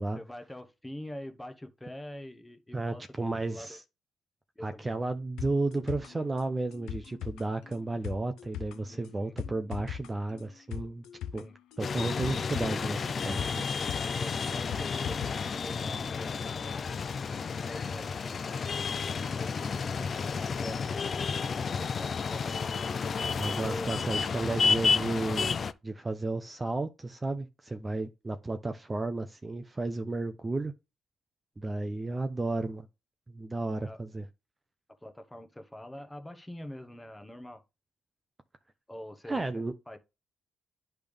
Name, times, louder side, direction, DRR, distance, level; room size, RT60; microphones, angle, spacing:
voice 1, 0.0-3.8 4.6-5.1 8.9-9.3 11.3-11.5 14.0-15.2 15.5-16.7 17.6-18.8 19.1-21.0 21.8-22.6 23.6-24.1 33.8-34.0 35.0-37.6 38.9-39.4 39.9-40.0, left 1 dB, 10° left, 1.0 m, -45 dB
voice 2, 2.7-3.8 4.6-11.0 11.3-11.5 11.8-13.7 23.4-25.5 25.8-30.7 31.6-32.9 33.3-34.3 39.2-39.7, right 2 dB, 20° right, 0.6 m, -33 dB
sound 1, 5.4-15.4 15.7-15.8, left 9 dB, 90° left, 0.6 m, -41 dB
sound 2, 11.8-25.7, left 5 dB, 45° left, 0.5 m, -31 dB
10.0 x 3.4 x 3.5 m
cardioid pair, 90°, 0 cm